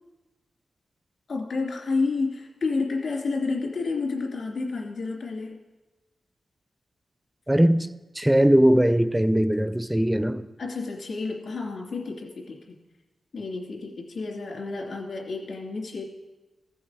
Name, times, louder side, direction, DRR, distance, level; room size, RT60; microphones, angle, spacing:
voice 1, 1.3-5.6 10.6-12.8 13.3-16.0, left 3 dB, 65° left, 2.6 m, -30 dB
voice 2, 7.5-7.9 8.2-10.5, right 1 dB, 5° right, 0.4 m, -20 dB
15.5 x 6.3 x 4.8 m
wide cardioid pair, 110°, 0 cm